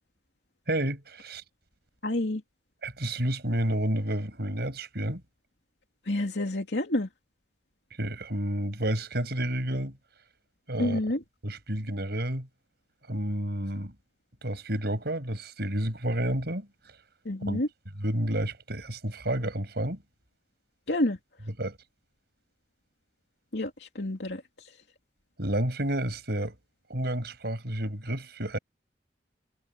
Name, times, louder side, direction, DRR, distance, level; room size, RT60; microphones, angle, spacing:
voice 1, 0.7-1.4 2.8-5.2 8.0-9.9 10.7-11.0 11.4-12.5 13.1-13.9 14.4-16.7 17.4-17.6 18.0-20.0 21.6-21.8 25.4-26.5 26.9-28.6, right 1 dB, 65° right, 6.5 m, -30 dB
voice 2, 2.0-2.4 6.1-7.1 10.8-11.2 17.2-17.7 20.9-21.2 23.5-24.4, left 1 dB, 75° left, 2.8 m, -28 dB
head